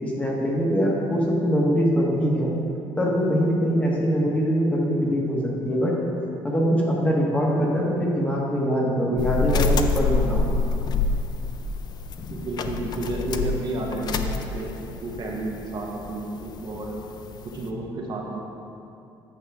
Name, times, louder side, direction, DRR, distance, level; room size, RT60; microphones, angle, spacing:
voice 1, 0.0-2.5 3.0-5.9 6.4-10.6, equal, 15° left, -3 dB, 1.3 m, -23 dB
sound 1, 9.2-17.7, left 3 dB, 45° left, 0.4 m, -27 dB
voice 2, 12.3-14.7 15.0-17.0 17.4-18.4, right 2 dB, 45° right, -1 dB, 1.0 m, -31 dB
9.2 x 5.7 x 3.5 m, 2.7 s
cardioid pair, 120°, 10 cm